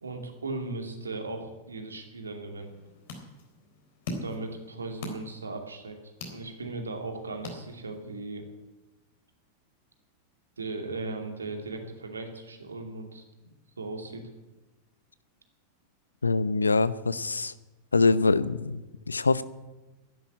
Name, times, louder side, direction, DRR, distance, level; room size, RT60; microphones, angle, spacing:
voice 1, 0.0-2.7 4.2-6.0 6.3-8.4 10.6-13.2 13.8-14.2, right 3 dB, 75° right, 4 dB, 2.6 m, -37 dB
sound 1, 2.6-8.2, left 2 dB, 55° left, 3.8 m, -43 dB
voice 2, 16.2-17.5 17.9-19.4, left 3 dB, 80° left, 16 dB, 0.7 m, -24 dB
12.0 x 11.0 x 9.8 m, 1.1 s
figure-of-eight pair, 90°, 0 cm